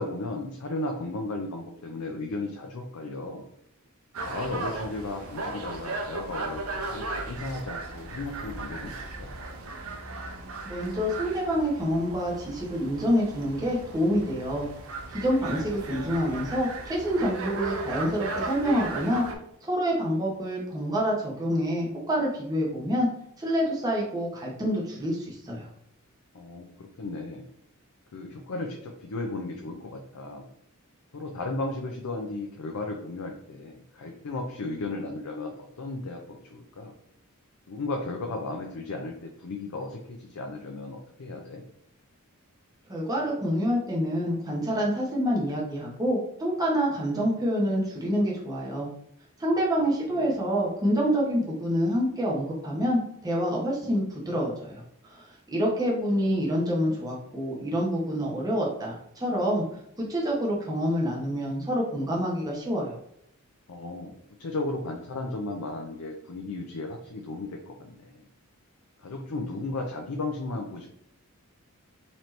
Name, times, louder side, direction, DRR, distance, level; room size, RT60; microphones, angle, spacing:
voice 1, 0.0-3.5 4.2-9.3 26.3-27.4 28.1-30.4 31.1-36.9 37.7-41.6 49.8-50.4 63.7-68.2 69.0-70.9, left 2 dB, 85° left, 2 dB, 0.5 m, -35 dB
sound 1, 4.1-19.3, right 2 dB, 70° right, 0.7 m, -36 dB
voice 2, 10.6-14.6 15.1-19.2 19.6-23.1 23.4-25.7 42.9-48.9 49.4-54.7 55.0-59.6 60.0-63.0, equal, 15° right, -4 dB, 0.9 m, -27 dB
4.1 x 2.9 x 3.1 m, 0.71 s
head